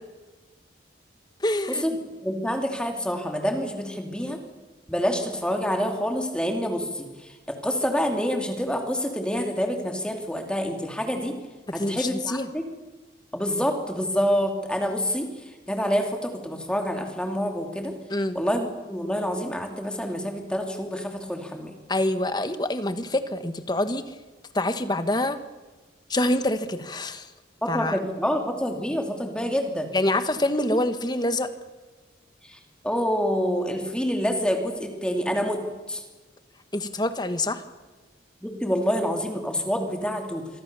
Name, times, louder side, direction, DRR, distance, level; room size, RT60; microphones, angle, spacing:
voice 1, 1.4-1.9 11.7-12.5 18.1-18.4 21.9-24.1 24.5-25.4 26.1-27.3 27.7-28.0 29.9-31.5 36.7-37.6, left 1 dB, 20° left, 10 dB, 1.4 m, -26 dB
voice 2, 2.2-4.4 4.9-7.1 7.5-11.3 11.7-12.6 13.3-15.3 15.7-17.9 18.3-21.7 27.6-29.9 32.5-32.6 32.8-35.6 35.9-36.0 38.4-40.5, equal, 5° left, 3 dB, 2.8 m, -27 dB
26.5 x 24.0 x 6.9 m, 1.3 s
head